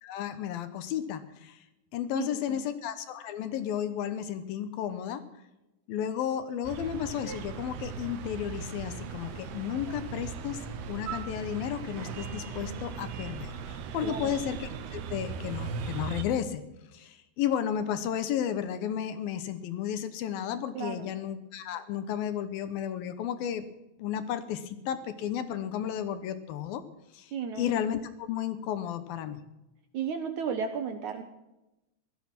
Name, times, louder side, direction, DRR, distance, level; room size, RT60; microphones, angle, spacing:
voice 1, 0.0-1.6 1.9-5.2 5.9-10.6 10.9-16.6 16.9-23.7 24.0-26.8 27.1-29.4, left 9 dB, 75° left, 11 dB, 2.6 m, -33 dB
voice 2, 2.2-2.6 14.0-14.3 20.8-21.1 27.3-27.7 29.9-31.2, right 6 dB, 65° right, 7 dB, 2.0 m, -34 dB
sound 1, 6.6-16.2, right 6 dB, 85° right, 3.3 m, -38 dB
17.0 x 13.0 x 6.0 m, 0.96 s
omnidirectional pair, 4.5 m